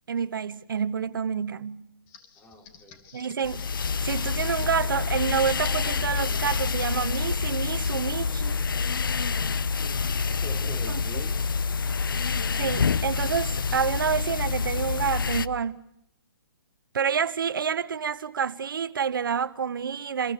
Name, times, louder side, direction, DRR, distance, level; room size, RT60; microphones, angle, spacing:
voice 1, 0.1-1.8 3.1-3.6 4.0-8.6 10.9-11.0 12.6-15.8 16.9-20.3, right 7 dB, 70° right, 1.0 m, -28 dB
Computer keyboard, 2.1-8.2, left 7 dB, 35° left, 3.7 m, -49 dB
voice 2, 2.4-3.0 10.2-12.2, left 1 dB, 10° left, 6.2 m, -44 dB
sound 1, 3.4-15.5, left 5 dB, 70° left, 1.1 m, -27 dB
29.0 x 22.5 x 6.8 m
figure-of-eight pair, 130°, 12 cm